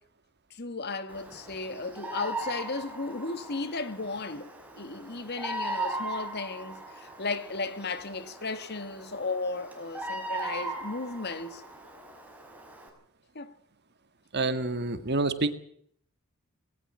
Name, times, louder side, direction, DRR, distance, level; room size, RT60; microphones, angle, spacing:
voice 1, 0.5-4.5 4.7-11.6 13.3-13.5, left 3 dB, 45° left, 1.5 m, -35 dB
Bird vocalization bird call bird song, 1.1-12.9, right 2 dB, 5° right, 5.4 m, -39 dB
voice 2, 14.3-15.5, right 3 dB, 50° right, 1.9 m, -28 dB
19.0 x 18.5 x 7.4 m
head